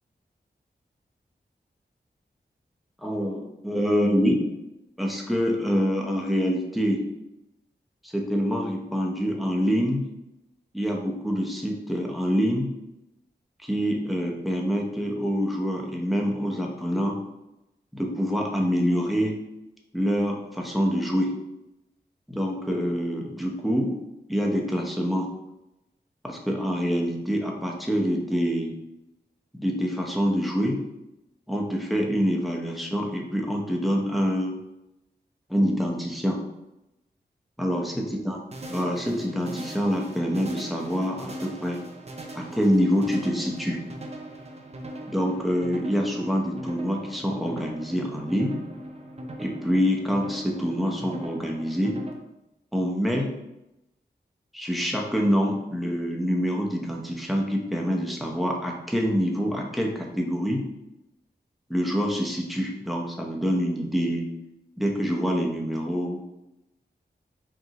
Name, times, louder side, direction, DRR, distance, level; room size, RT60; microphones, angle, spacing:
voice 1, 3.0-4.4 5.0-7.0 8.0-10.1 10.7-12.7 13.6-17.2 17.9-19.4 19.9-21.4 22.3-24.0 24.3-25.3 26.2-28.8 29.6-30.8 31.5-34.6 35.5-36.4 37.6-38.4 38.7-41.8 42.3-43.8 45.1-48.6 49.4-52.0 52.7-53.3 54.5-60.6 61.7-64.3 64.8-66.2, equal, ahead, -1 dB, 0.8 m, -26 dB
sound 1, 38.5-52.1, right 1 dB, 35° right, 0.6 m, -40 dB
5.0 x 2.7 x 2.9 m, 0.90 s
wide cardioid pair, 75°, 18 cm